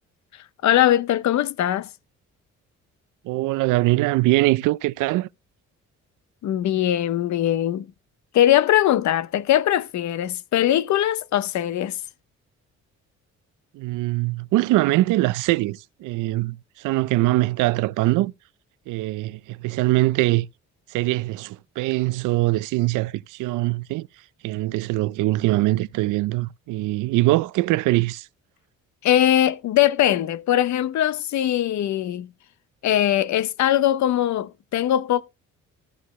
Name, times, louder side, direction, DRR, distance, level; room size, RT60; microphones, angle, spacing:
voice 1, 0.6-1.9 6.4-7.9 8.3-12.0 29.0-32.3 32.8-35.2, left 12 dB, 70° left, 0.7 m, -21 dB
voice 2, 3.2-5.3 13.7-18.3 18.9-20.5 20.9-24.1 24.4-28.3, right 19 dB, 90° right, 0.5 m, -22 dB
14.5 x 6.4 x 3.1 m
cardioid pair, 90°, 30 cm